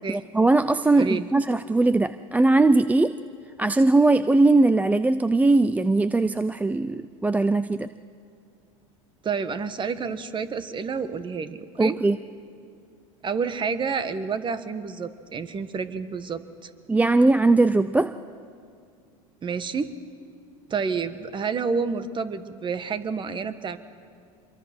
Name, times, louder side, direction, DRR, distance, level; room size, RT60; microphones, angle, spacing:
voice 1, 0.1-3.2 3.6-7.9 11.8-12.2 16.9-18.1, right 2 dB, 10° right, 13 dB, 0.4 m, -20 dB
voice 2, 1.0-1.3 9.2-12.0 13.2-16.7 19.4-19.9 20.7-23.8, right 5 dB, 25° right, 12 dB, 1.4 m, -29 dB
25.5 x 23.0 x 6.1 m, 2.3 s
hypercardioid pair, 90°, 18 cm